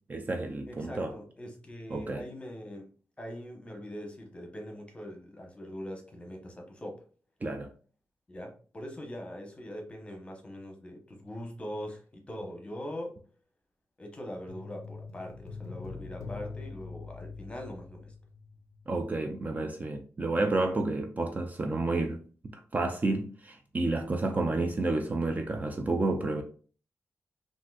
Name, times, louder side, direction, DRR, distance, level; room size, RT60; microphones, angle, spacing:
voice 1, 0.1-1.1 1.9-2.2 7.4-7.7 18.9-22.2 22.4-26.4, right 2 dB, 30° right, 0.4 m, -30 dB
voice 2, 0.7-2.9 3.2-7.0 8.3-13.2 14.0-18.1 21.2-21.3, equal, 20° left, 0.9 m, -42 dB
sound 1, 14.5-18.9 19.2-19.3, left 4 dB, 60° left, 0.4 m, -44 dB
3.7 x 2.5 x 2.3 m
wide cardioid pair, 105°, 5 cm